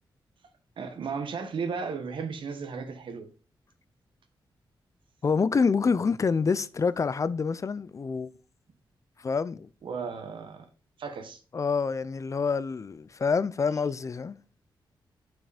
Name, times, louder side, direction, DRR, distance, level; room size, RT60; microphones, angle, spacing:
voice 1, 0.8-3.3 9.8-10.6 11.0-11.4, right 5 dB, 75° right, 1.2 m, -35 dB
voice 2, 5.2-8.3 9.2-9.7 11.5-14.4, left 5 dB, 40° left, 0.4 m, -27 dB
6.0 x 4.8 x 4.9 m
cardioid pair, 85°, 9 cm